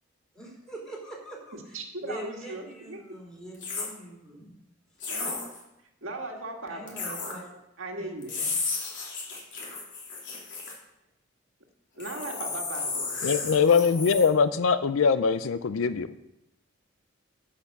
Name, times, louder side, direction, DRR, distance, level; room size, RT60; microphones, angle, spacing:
voice 1, 0.3-4.5 5.2-5.3 6.7-7.6 8.0-8.6, right 1 dB, 5° left, -2 dB, 3.4 m, -43 dB
voice 2, 1.7-3.0 5.1-5.3 6.0-7.0 7.8-8.3 12.0-13.2, right 2 dB, 70° right, 2 dB, 1.9 m, -37 dB
sound 1, 3.5-3.9 5.0-5.6 6.9-7.3 8.2-10.7 12.0-14.3, left 4 dB, 60° left, 3.3 m, -33 dB
voice 3, 13.2-16.2, left 5 dB, 75° left, 14 dB, 0.5 m, -22 dB
14.0 x 5.8 x 5.9 m, 0.87 s
head